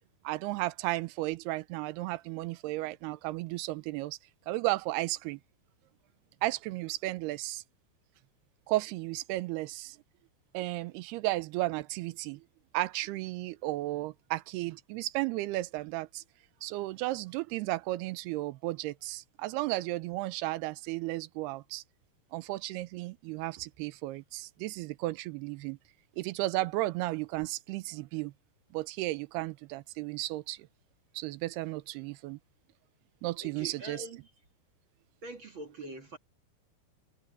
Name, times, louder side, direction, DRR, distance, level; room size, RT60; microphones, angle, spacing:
voice 1, 0.2-4.2 4.5-5.4 6.4-7.6 8.7-10.0 10.5-12.4 12.7-16.2 16.6-21.8 22.3-25.8 26.2-28.3 28.7-30.7 31.1-32.4 33.2-34.0, right 18 dB, 85° right, 2.7 m, -34 dB
voice 2, 33.4-34.3 35.2-36.2, right 2 dB, 50° right, 1.6 m, -43 dB
omnidirectional pair, 4.6 m